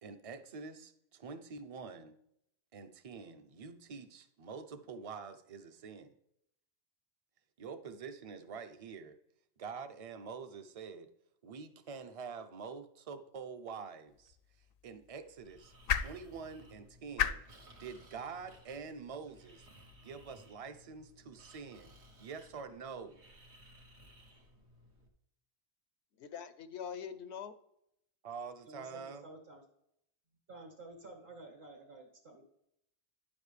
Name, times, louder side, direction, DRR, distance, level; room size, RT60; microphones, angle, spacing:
voice 1, 0.0-2.2 2.7-6.1 7.6-9.2 9.6-11.1 11.4-14.4 14.8-19.7 20.0-23.2 28.2-29.2, right 5 dB, 40° right, 9 dB, 0.6 m, -46 dB
sound 1, 14.1-20.3, left 8 dB, 65° left, 0.7 m, -40 dB
Breathing, 15.4-25.1, equal, 85° right, 1.6 m, -60 dB
voice 2, 26.2-27.5, left 7 dB, 90° left, 12 dB, 1.0 m, -43 dB
voice 3, 28.7-29.6 30.5-32.4, right 2 dB, 65° right, 2 dB, 2.0 m, -51 dB
9.9 x 7.2 x 3.3 m, 0.76 s
omnidirectional pair, 1.1 m